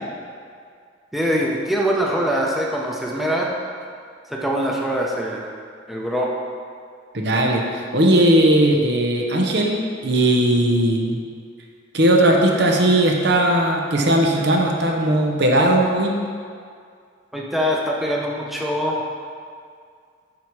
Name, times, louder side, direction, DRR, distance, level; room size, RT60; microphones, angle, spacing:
voice 1, 1.1-3.5 4.3-5.5 5.9-6.3 17.3-19.0, equal, ahead, -3 dB, 0.7 m, -23 dB
voice 2, 7.1-11.2 11.9-16.1, right 1 dB, 65° right, 1 dB, 0.9 m, -18 dB
7.8 x 5.4 x 4.7 m, 2.2 s
head